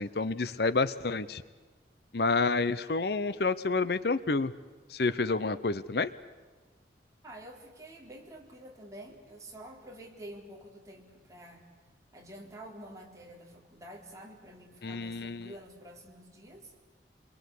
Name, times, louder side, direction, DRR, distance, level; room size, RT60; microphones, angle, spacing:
voice 1, 0.0-1.4 2.1-4.5 4.9-6.1 14.8-15.5, left 3 dB, 55° left, 15 dB, 0.7 m, -29 dB
voice 2, 7.2-11.7 12.1-16.7, right 1 dB, 20° right, 0 dB, 3.8 m, -48 dB
27.0 x 22.5 x 8.4 m, 1.4 s
head